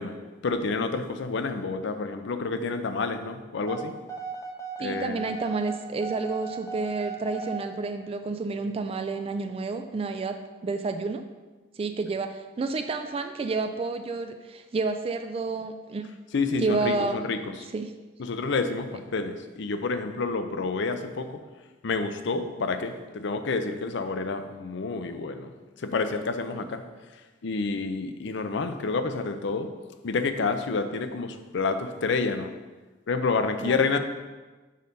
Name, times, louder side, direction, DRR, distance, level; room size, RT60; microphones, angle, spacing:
voice 1, 0.0-3.9 4.8-5.2 16.3-17.5 18.2-21.4 21.8-25.5 25.8-26.8 27.4-29.7 30.0-32.5 33.1-34.0, left 4 dB, 65° left, 9 dB, 0.5 m, -29 dB
sound 1, 3.7-7.6, right 5 dB, 15° left, 0.8 m, -36 dB
voice 2, 4.8-11.2 11.8-16.0 16.6-17.2 17.7-17.9 33.6-33.9, right 3 dB, 30° right, 7 dB, 0.3 m, -30 dB
6.5 x 3.9 x 5.3 m, 1.3 s
head